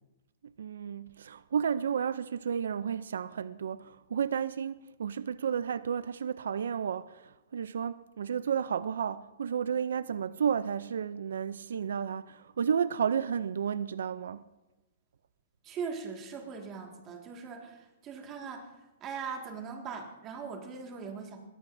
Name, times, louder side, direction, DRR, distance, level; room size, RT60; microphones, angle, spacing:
voice 1, 0.6-14.4, right 7 dB, 85° right, 0.4 m, -32 dB
voice 2, 15.6-18.7 19.0-21.4, right 5 dB, 20° right, 1.9 m, -40 dB
22.0 x 17.0 x 2.6 m
hypercardioid pair, 160°, 0 cm